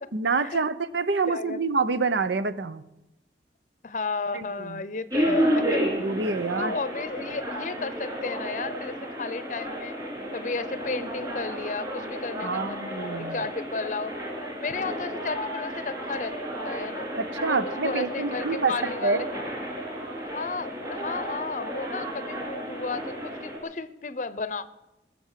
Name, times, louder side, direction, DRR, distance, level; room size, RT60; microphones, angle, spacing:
voice 1, 0.1-2.8 4.3-4.8 5.3-5.4 5.8-6.7 12.4-13.4 17.2-19.3, right 4 dB, 85° right, 14 dB, 0.8 m, -27 dB
voice 2, 1.2-1.6 3.8-5.8 6.6-9.9 10.3-14.2 14.6-16.4 16.6-17.1 17.5-19.2 20.2-24.9, left 4 dB, 45° left, 14 dB, 0.6 m, -33 dB
sound 1, 5.1-23.6, equal, 25° right, 3.5 m, -32 dB
20.0 x 7.0 x 7.4 m, 0.92 s
head